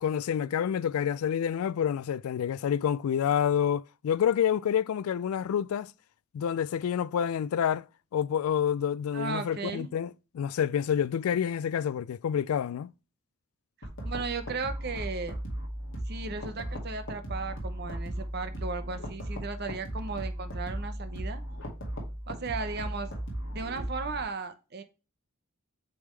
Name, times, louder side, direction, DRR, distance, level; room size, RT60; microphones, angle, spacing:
voice 1, 0.0-5.9 6.3-7.9 8.1-12.9, left 8 dB, 85° left, 0.3 m, -28 dB
voice 2, 9.1-9.9 13.8-15.3 16.1-21.4 22.3-23.1 23.5-24.8, right 4 dB, 50° right, 0.8 m, -36 dB
sound 1, 13.8-24.2, equal, 60° left, 2.1 m, -37 dB
8.2 x 3.5 x 3.3 m
head